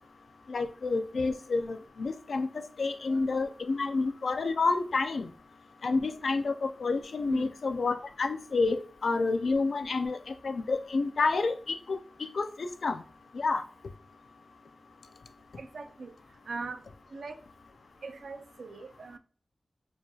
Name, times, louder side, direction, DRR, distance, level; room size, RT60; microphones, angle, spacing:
voice 1, 0.5-2.5 2.8-5.3 5.8-13.0 13.3-13.6, left 3 dB, 85° left, 0.3 m, -29 dB
voice 2, 15.6-16.1 16.5-16.8 17.1-17.4 18.0-19.2, right 4 dB, 90° right, 0.3 m, -41 dB
4.6 x 2.8 x 2.3 m
wide cardioid pair, 70°, 0 cm